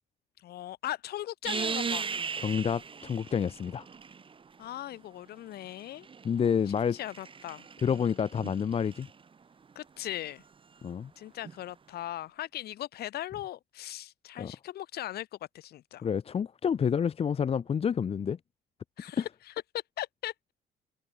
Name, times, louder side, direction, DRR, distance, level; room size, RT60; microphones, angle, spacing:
voice 1, 0.4-2.1 4.6-6.1 6.9-8.1 9.8-10.4 11.2-15.3 15.5-16.1 19.0-20.5, left 13 dB, 70° left, 7.2 m, -39 dB
sound 1, 1.4-4.5 5.6-9.1 11.4-11.6, right 5 dB, 30° right, 3.8 m, -38 dB
voice 2, 2.4-3.9 6.2-7.0 7.8-9.1 10.8-11.1 14.4-14.5 16.0-18.4 19.2-19.3, left 7 dB, 35° left, 1.0 m, -28 dB
cardioid pair, 110°, 17 cm